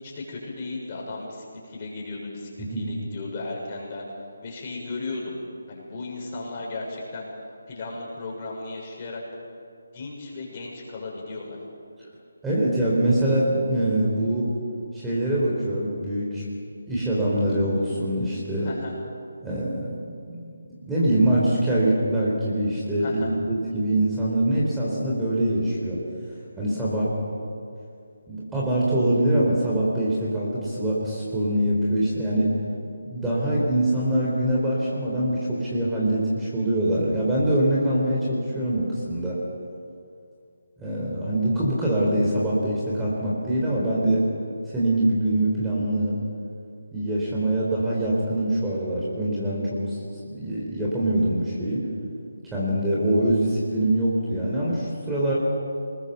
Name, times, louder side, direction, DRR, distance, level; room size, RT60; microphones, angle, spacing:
voice 1, 0.0-4.1 4.4-5.4 5.7-7.3 7.7-9.2 9.9-11.6 18.6-19.0 23.0-23.3, left 3 dB, 30° left, -2 dB, 6.7 m, -35 dB
voice 2, 12.4-14.6 14.9-16.4 16.9-18.7 19.4-20.0 20.3-20.6 20.9-26.0 26.6-27.1 28.3-32.5 33.1-39.4 40.8-44.3 44.7-46.1 46.9-50.0 50.3-51.9 52.5-55.3, right 1 dB, 5° right, -7 dB, 4.3 m, -24 dB
27.5 x 21.0 x 7.1 m, 2.4 s
figure-of-eight pair, 150°, 0 cm